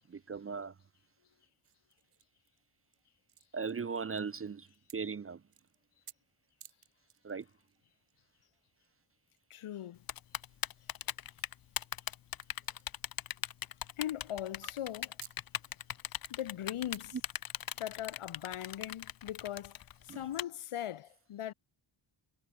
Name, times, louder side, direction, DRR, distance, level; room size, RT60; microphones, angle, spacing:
voice 1, 0.1-0.7 3.5-4.7 4.9-5.4 7.2-7.4 20.1-20.2, right 5 dB, 30° right, 0.5 m, -38 dB
sound 1, 1.6-3.0 3.3-4.4 4.6-5.0 5.5-5.8 6.0-6.1 6.5-7.8 8.1-8.2 8.8-8.9 9.2-9.8 10.3-10.5 11.5-13.0 13.3-14.2 14.4-14.6 15.1-15.5 15.8-15.9 16.2-17.9 18.4-18.5, right 10 dB, 85° right, 2.3 m, -57 dB
voice 2, 9.5-10.0 14.0-15.2 16.3-17.2 17.8-19.8 20.0-21.5, left 11 dB, 80° left, 1.1 m, -39 dB
Typing, 10.1-20.4, left 10 dB, 45° left, 0.6 m, -38 dB
wide cardioid pair, 125°, 49 cm